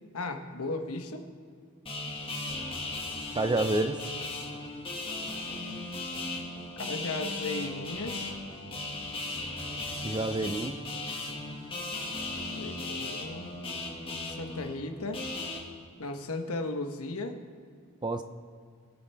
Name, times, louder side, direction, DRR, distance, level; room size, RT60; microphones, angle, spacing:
voice 1, 0.1-1.3 6.8-8.3 12.4-13.5 14.2-15.2 16.0-17.4, left 2 dB, 75° left, 6 dB, 1.1 m, -36 dB
sound 1, 1.9-15.6, left 2 dB, 25° left, 1.7 m, -37 dB
voice 2, 3.3-4.0 10.0-10.8 18.0-18.2, right 2 dB, 20° right, 8 dB, 0.4 m, -28 dB
21.5 x 7.2 x 3.4 m, 2.2 s
head